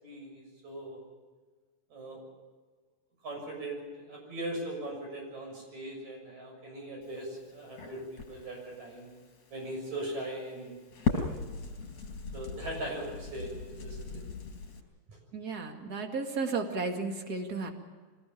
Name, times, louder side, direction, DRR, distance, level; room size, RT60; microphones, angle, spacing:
voice 1, 0.0-1.0 1.9-2.2 3.2-9.1 9.5-10.8 11.1-11.4 12.3-14.2, right 1 dB, 65° right, 0 dB, 8.3 m, -40 dB
Crackle, 7.0-14.8, left 4 dB, 55° left, 5.3 m, -39 dB
voice 2, 15.3-17.7, right 4 dB, 35° right, 3 dB, 2.3 m, -33 dB
24.5 x 19.0 x 7.2 m, 1.4 s
omnidirectional pair, 3.4 m